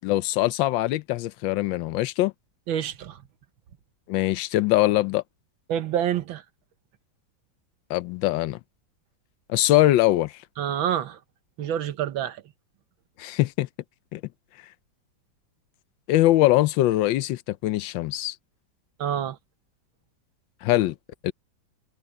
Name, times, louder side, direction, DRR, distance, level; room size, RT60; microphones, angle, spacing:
voice 1, 0.0-2.3 4.1-5.2 7.9-8.6 9.5-10.3 13.2-13.7 14.1-14.2 16.1-18.4 20.6-20.9 21.2-21.3, left 16 dB, 80° left, 1.3 m, -22 dB
voice 2, 2.7-3.2 5.7-6.4 10.6-11.2 11.6-12.4 19.0-19.4, right 10 dB, 85° right, 1.8 m, -27 dB
omnidirectional pair, 2.1 m